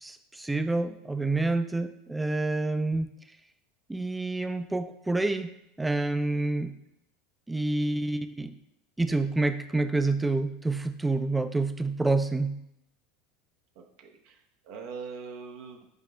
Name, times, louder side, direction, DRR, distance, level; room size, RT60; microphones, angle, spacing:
voice 1, 0.0-3.1 3.9-6.7 7.5-8.5 9.0-12.6, right 2 dB, 10° right, 10 dB, 0.4 m, -28 dB
voice 2, 13.8-15.9, right 5 dB, 65° right, 2 dB, 0.6 m, -42 dB
5.1 x 4.7 x 2.2 m, 0.79 s
hypercardioid pair, 90°, 0 cm